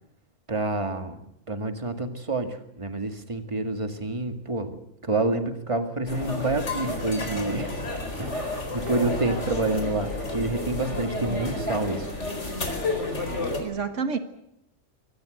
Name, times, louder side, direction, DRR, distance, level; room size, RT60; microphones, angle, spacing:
voice 1, 0.5-4.8 5.0-7.8 8.2-12.1, right 2 dB, 25° right, 7 dB, 2.1 m, -28 dB
sound 1, 6.1-13.6, left 2 dB, 65° left, 4.8 m, -31 dB
voice 2, 11.2-11.6 13.6-14.2, right 5 dB, 75° right, 9 dB, 1.7 m, -30 dB
24.5 x 19.0 x 7.9 m, 0.78 s
omnidirectional pair, 1.3 m